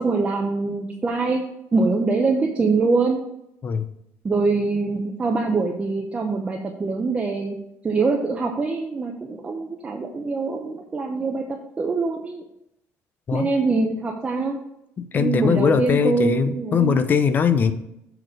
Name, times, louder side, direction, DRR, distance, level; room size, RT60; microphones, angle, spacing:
voice 1, 0.0-1.4 1.7-3.2 4.2-7.6 7.8-11.4 11.8-12.4 13.3-14.6 15.1-17.0, right 3 dB, 20° right, 1 dB, 0.7 m, -23 dB
voice 2, 15.0-17.7, left 6 dB, 35° left, 11 dB, 0.6 m, -20 dB
6.9 x 4.1 x 6.4 m, 0.81 s
cardioid pair, 145°, 6 cm